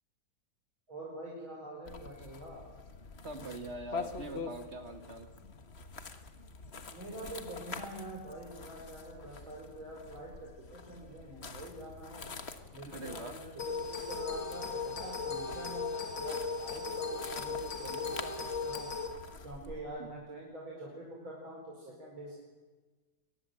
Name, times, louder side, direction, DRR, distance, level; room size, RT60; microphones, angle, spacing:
voice 1, 0.9-2.6 6.9-12.3 12.7-18.9 19.4-22.4, right 1 dB, 70° right, -2 dB, 5.4 m, -45 dB
sound 1, 1.9-19.8, left 4 dB, 35° left, 1.4 m, -46 dB
voice 2, 3.2-5.3 12.9-13.4 20.0-20.1, right 2 dB, 35° right, 7 dB, 1.8 m, -43 dB
sound 2, 13.6-19.1, left 4 dB, 60° left, 3.5 m, -37 dB
23.5 x 19.5 x 7.8 m, 1.3 s
omnidirectional pair, 2.3 m